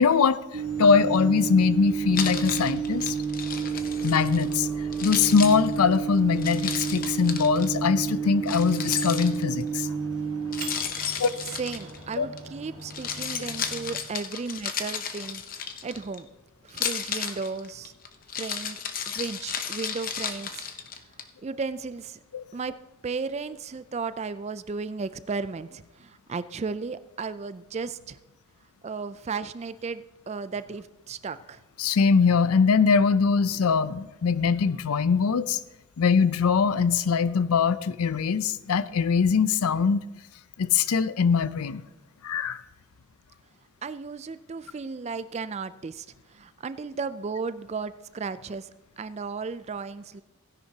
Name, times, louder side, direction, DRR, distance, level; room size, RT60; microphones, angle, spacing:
voice 1, 0.0-3.1 4.0-4.7 5.0-9.9 11.2-11.3 12.2-12.3 22.3-22.5 31.8-35.6 36.0-40.0 40.6-41.8 42.2-42.6, left 5 dB, 85° left, 15 dB, 0.5 m, -22 dB
Microwave oven, 0.5-14.0, right 6 dB, 65° right, 1.4 m, -31 dB
Keys jangling, 2.1-4.6 4.9-7.7 8.5-9.7 10.5-12.4 12.8-16.2 16.7-21.2, left 7 dB, 40° left, 0.7 m, -33 dB
Gong, 3.4-13.2 14.1-14.4, left 1 dB, 5° right, 3.5 m, -53 dB
voice 2, 11.6-16.3 16.6-17.9 18.3-20.7 21.4-22.2 22.5-22.7 23.0-28.2 28.8-31.6 43.8-50.2, right 4 dB, 30° right, 13 dB, 0.3 m, -35 dB
16.0 x 10.5 x 2.8 m, 0.98 s
head